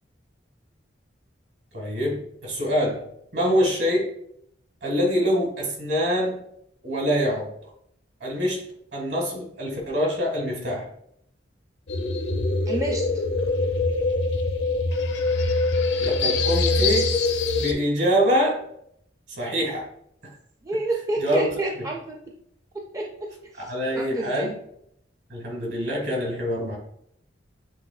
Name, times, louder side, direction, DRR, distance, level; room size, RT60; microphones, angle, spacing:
voice 1, 1.7-3.0 3.3-4.1 4.8-6.4 6.8-7.5 8.2-8.6 8.9-10.9 16.0-17.1 17.5-18.6 19.4-19.9 21.2-21.5 23.6-24.6 25.3-26.8, equal, 65° right, -1 dB, 1.7 m, -24 dB
sound 1, 11.9-17.7, left 3 dB, 65° left, 0.6 m, -23 dB
voice 2, 12.7-13.2 20.6-22.2 22.7-23.3 23.5-24.5, right 2 dB, 15° right, 0 dB, 0.4 m, -29 dB
7.5 x 2.9 x 2.4 m, 0.70 s
head